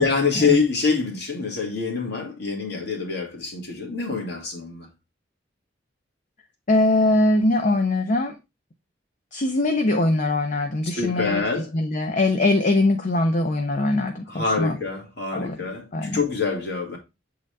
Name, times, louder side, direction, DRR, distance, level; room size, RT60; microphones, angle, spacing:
voice 1, 0.0-4.9 10.8-11.7 14.3-17.0, left 4 dB, 65° left, 2.0 m, -25 dB
voice 2, 6.7-8.3 9.3-11.4 11.7-14.8 15.3-15.6 15.9-16.2, left 2 dB, 45° left, 0.7 m, -22 dB
7.6 x 3.9 x 3.3 m
head